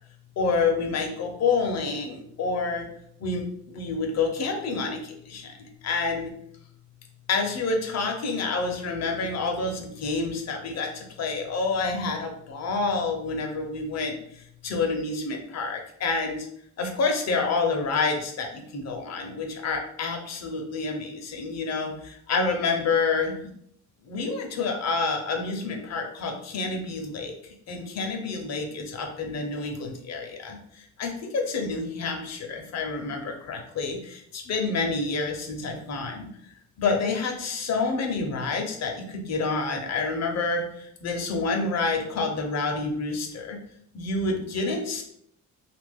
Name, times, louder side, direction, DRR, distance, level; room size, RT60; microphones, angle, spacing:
voice 1, 0.4-2.8 3.2-6.3 7.3-16.5 16.8-23.5 24.0-36.3 36.8-43.6 43.9-45.0, left 4 dB, 60° left, 3 dB, 0.8 m, -28 dB
2.8 x 2.5 x 3.5 m, 0.68 s
cardioid pair, 90°, 30 cm